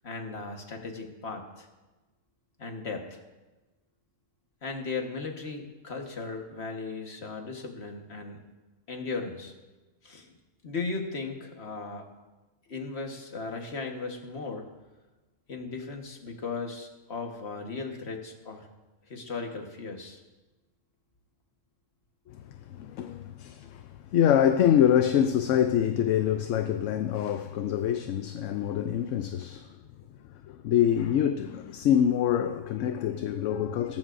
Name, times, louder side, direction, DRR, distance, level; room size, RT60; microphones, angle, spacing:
voice 1, 0.0-1.7 2.6-3.2 4.6-8.4 8.9-9.5 10.0-10.3 10.6-12.1 12.7-14.7 15.5-18.7 19.1-20.2, left 4 dB, 55° left, 1.7 m, -37 dB
voice 2, 22.7-29.7 30.5-34.0, left 9 dB, 75° left, 0.9 m, -25 dB
17.5 x 14.5 x 2.6 m
omnidirectional pair, 1.4 m